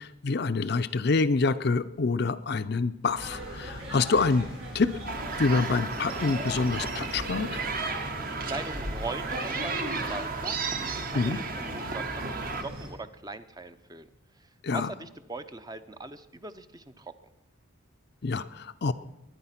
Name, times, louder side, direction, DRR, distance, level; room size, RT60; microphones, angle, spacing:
voice 1, 0.0-4.5 4.7-5.0 5.4-7.6 11.1-11.4 14.6-14.9 18.2-18.9, left 4 dB, 50° left, 11 dB, 0.5 m, -26 dB
sound 1, 3.1-12.9, equal, 85° right, 6.9 m, -38 dB
sound 2, 5.1-12.6, right 4 dB, 40° right, 1.1 m, -34 dB
voice 2, 8.4-14.1 14.4-17.1, right 3 dB, 20° right, 10 dB, 0.6 m, -41 dB
22.0 x 9.9 x 5.8 m, 0.94 s
head